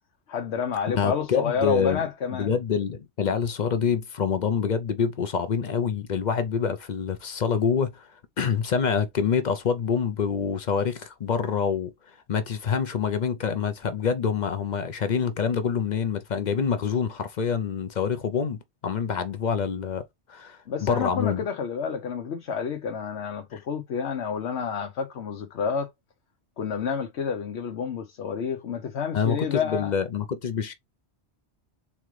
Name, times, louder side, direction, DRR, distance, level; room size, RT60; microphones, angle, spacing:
voice 1, 0.3-2.6 20.7-25.9 26.6-29.9, left 6 dB, 75° left, 1.1 m, -29 dB
voice 2, 0.9-8.1 8.4-21.4 23.5-23.6 29.1-30.7, left 6 dB, 50° left, 0.6 m, -26 dB
4.1 x 3.7 x 3.1 m
omnidirectional pair, 1.2 m